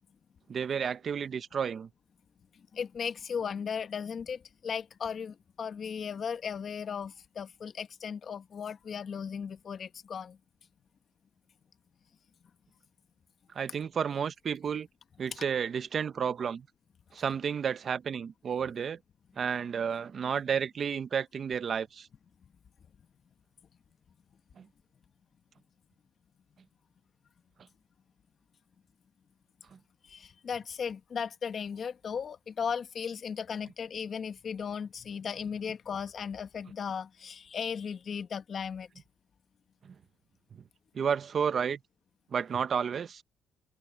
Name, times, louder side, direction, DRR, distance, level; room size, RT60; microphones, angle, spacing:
voice 1, 0.5-1.9 13.5-14.9 15.2-16.7 17.1-19.0 19.4-22.1 24.6-24.7 39.8-39.9 40.9-41.8 42.3-43.2, right 7 dB, 50° right, 0.8 m, -31 dB
voice 2, 2.7-10.4 30.0-38.9, left 7 dB, 50° left, 1.4 m, -36 dB
cardioid pair, 90°, 0 cm